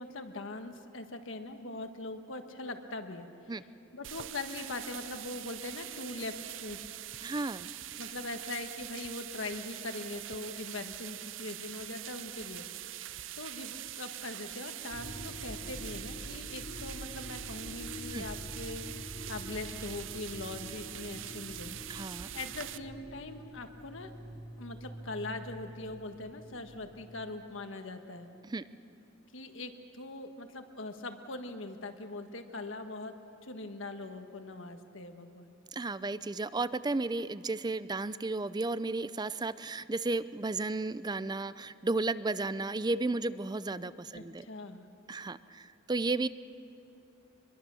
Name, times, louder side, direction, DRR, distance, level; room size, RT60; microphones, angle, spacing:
voice 1, 0.0-3.3 3.9-6.4 6.6-6.8 8.0-12.6 13.4-21.8 22.3-24.1 24.6-28.3 29.3-33.1 33.4-35.5 44.1-44.8, left 2 dB, 65° left, 6 dB, 1.5 m, -41 dB
sound 1, 4.0-22.8, right 13 dB, 65° right, 0.6 m, -43 dB
voice 2, 7.2-7.7 18.1-18.2 21.9-22.3 28.4-28.6 35.7-44.5 45.1-46.3, right 3 dB, 20° right, 15 dB, 0.5 m, -33 dB
sound 2, 14.9-27.2, equal, 20° left, 2.6 m, -46 dB
25.0 x 22.0 x 7.0 m, 2.7 s
head